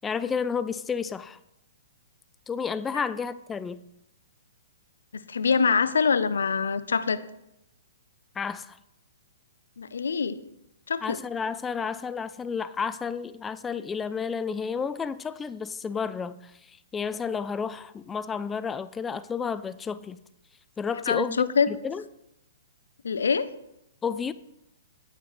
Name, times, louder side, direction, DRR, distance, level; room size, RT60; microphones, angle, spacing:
voice 1, 0.0-1.4 2.5-3.8 8.4-8.8 11.0-20.2 20.8-22.0 24.0-24.3, left 6 dB, 15° left, 0.3 m, -31 dB
voice 2, 5.1-7.2 9.8-10.4 10.9-11.2 21.1-21.7 23.0-23.5, left 5 dB, 75° left, 0.6 m, -24 dB
9.4 x 8.9 x 3.2 m
hypercardioid pair, 120°, 0 cm